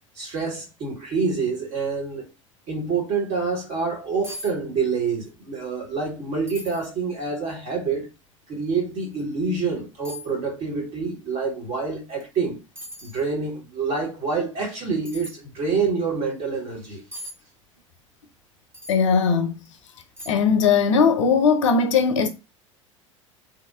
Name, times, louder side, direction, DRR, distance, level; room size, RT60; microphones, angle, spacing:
voice 1, 0.2-2.3 2.7-8.1 8.5-12.6 13.0-17.0, right 4 dB, 45° right, 1.0 m, -27 dB
sound 1, 4.2-4.5 4.8-5.4 5.7-5.8 6.5-6.9 7.5-7.6 9.1-9.3 10.0-10.3 12.2-12.4 12.8-13.3 15.0-15.3 17.1-17.3 18.7-19.0 19.6-19.7 20.2-20.6 20.9-21.0, left 1 dB, 15° right, 0.9 m, -39 dB
voice 2, 18.9-19.5 20.3-22.3, left 5 dB, 65° left, 0.5 m, -19 dB
2.8 x 2.1 x 2.3 m
figure-of-eight pair, 75°, 17 cm